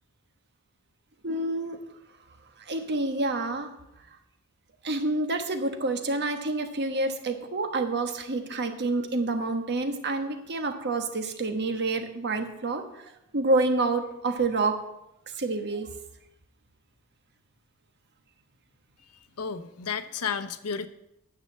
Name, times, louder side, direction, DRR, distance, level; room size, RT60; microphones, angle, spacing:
voice 1, 1.2-1.8 2.6-3.7 4.8-14.7 15.4-15.9, right 2 dB, 50° right, 6 dB, 1.2 m, -28 dB
voice 2, 19.1-20.9, left 6 dB, 90° left, 10 dB, 0.8 m, -32 dB
9.7 x 6.7 x 7.5 m, 0.85 s
head